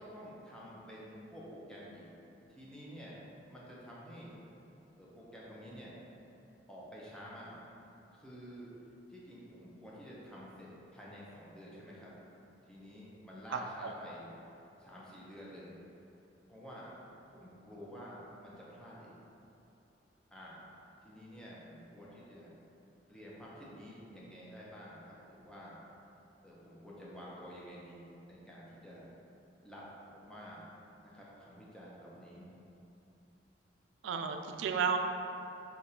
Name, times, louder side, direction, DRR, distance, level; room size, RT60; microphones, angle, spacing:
voice 1, 0.0-2.2 2.5-3.2 3.5-4.4 5.0-6.0 6.7-7.6 8.1-8.7 9.1-12.1 12.7-14.3 14.8-15.8 16.5-16.9 17.3-19.2 20.3-20.6 21.0-22.6 23.1-25.9 26.4-29.1 29.6-29.8 30.1-30.7 31.0-32.5, equal, 5° left, -7 dB, 0.7 m, -50 dB
voice 2, 13.5-13.9 34.0-35.0, right 6 dB, 85° right, 5 dB, 0.3 m, -33 dB
6.5 x 2.5 x 2.8 m, 2.9 s
head